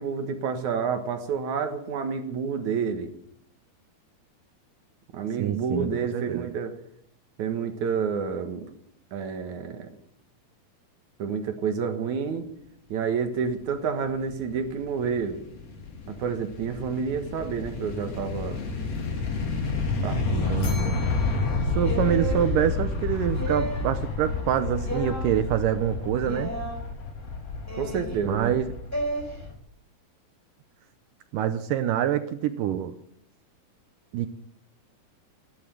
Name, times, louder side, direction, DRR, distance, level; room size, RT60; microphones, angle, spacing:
voice 1, 0.0-3.1 5.1-6.7 7.4-8.7 9.1-10.0 11.2-12.5 12.9-15.4 16.1-18.6 20.0-20.9 27.8-28.6, right 6 dB, 60° right, 7 dB, 2.5 m, -29 dB
voice 2, 5.4-6.5 20.5-21.0 21.8-26.5 28.2-28.7 31.3-32.9 34.1-34.3, right 10 dB, 75° right, 10 dB, 2.0 m, -26 dB
sound 1, 14.0-29.6, left 3 dB, 45° left, 3.2 m, -30 dB
Bell, 20.6-22.9, left 4 dB, 65° left, 6.5 m, -45 dB
sound 2, 21.8-22.4 23.3-24.0 24.8-25.3 26.2-26.8 27.7-28.2 28.9-29.2, right 1 dB, 5° left, 4.0 m, -32 dB
15.0 x 12.0 x 7.8 m, 0.69 s
omnidirectional pair, 4.5 m